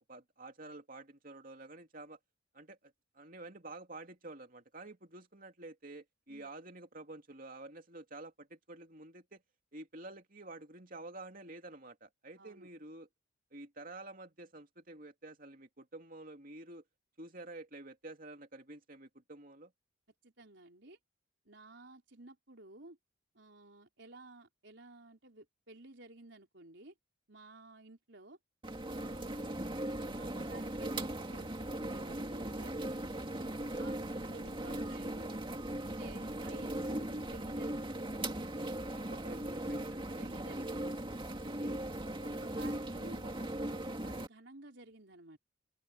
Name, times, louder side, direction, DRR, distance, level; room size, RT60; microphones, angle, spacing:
voice 1, 0.0-2.2 2.5-9.4 9.7-13.1 13.5-16.8 17.2-19.7 33.4-33.8 38.9-40.3, right 2 dB, 45° right, 2.8 m, -50 dB
voice 2, 12.4-12.7 20.2-21.0 21.5-23.0 23.3-26.9 27.3-28.4 28.9-29.4 29.8-32.8 33.8-35.4 36.0-38.1 40.2-40.9 41.4-45.4, right 2 dB, 60° right, 4.8 m, -54 dB
sound 1, 28.6-44.3, right 1 dB, 25° right, 2.2 m, -39 dB
open air
head